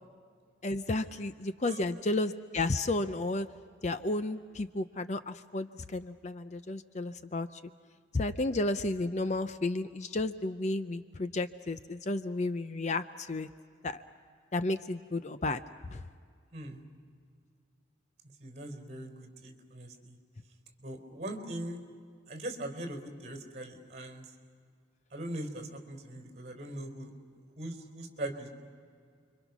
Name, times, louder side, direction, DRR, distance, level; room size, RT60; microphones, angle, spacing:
voice 1, 0.6-3.5 3.8-7.5 8.1-13.5 13.8-14.0 14.5-15.6 15.9-16.0, left 2 dB, 40° left, 11 dB, 0.6 m, -32 dB
voice 2, 18.4-20.2 20.8-21.8 22.3-24.2 25.1-27.1 27.6-28.5, right 1 dB, 40° right, 5 dB, 3.9 m, -40 dB
30.0 x 24.0 x 6.1 m, 2.1 s
head